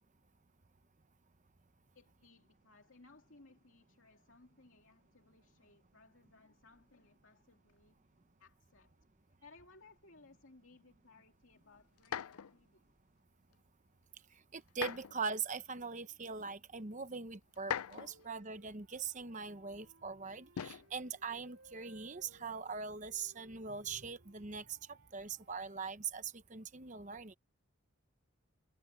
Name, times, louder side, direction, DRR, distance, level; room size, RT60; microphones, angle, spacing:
voice 1, 1.9-9.0 9.4-12.9, left 3 dB, 60° left, 2.7 m, -63 dB
sound 1, 12.0-12.6 14.7-15.2 16.2-16.3 17.6-18.3 20.6-20.9 22.1-22.5, left 8 dB, 90° left, 0.5 m, -41 dB
voice 2, 14.5-27.3, right 5 dB, 35° right, 0.9 m, -42 dB
sound 2, 18.1-25.9, right 3 dB, 70° right, 3.7 m, -64 dB
head